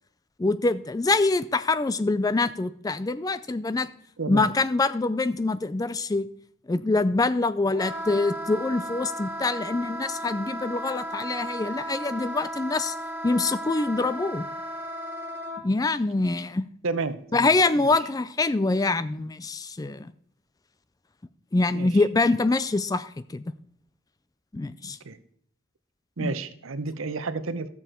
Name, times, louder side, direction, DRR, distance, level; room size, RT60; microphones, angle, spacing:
voice 1, 0.4-3.9 4.3-6.3 6.7-12.9 13.2-14.5 15.6-16.6 17.3-20.1 21.5-23.4 24.5-25.0 26.2-26.3, left 3 dB, 15° left, 15 dB, 0.3 m, -25 dB
voice 2, 4.2-4.5 16.8-17.5 17.8-17.9 21.7-22.0 24.8-25.2 26.2-27.7, right 3 dB, 75° right, 12 dB, 0.8 m, -31 dB
Wind instrument woodwind instrument, 7.7-15.6, right 1 dB, 10° right, 1.6 m, -35 dB
14.0 x 7.0 x 4.4 m, 0.64 s
head